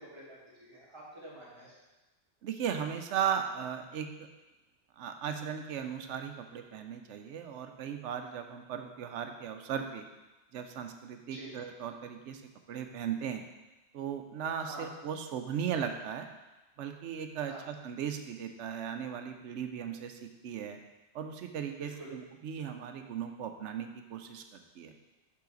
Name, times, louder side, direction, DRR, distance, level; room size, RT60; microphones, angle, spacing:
voice 1, 0.0-1.7 11.3-11.5 14.7-14.9 17.5-17.6 21.8-22.1, right 1 dB, 25° right, -8 dB, 2.2 m, -47 dB
voice 2, 2.4-4.1 5.0-10.1 10.5-12.4 12.7-13.4 13.9-16.3 16.8-20.8 21.1-24.9, right 8 dB, 85° right, 6 dB, 0.9 m, -37 dB
5.7 x 5.6 x 3.9 m, 1.1 s
omnidirectional pair, 1.2 m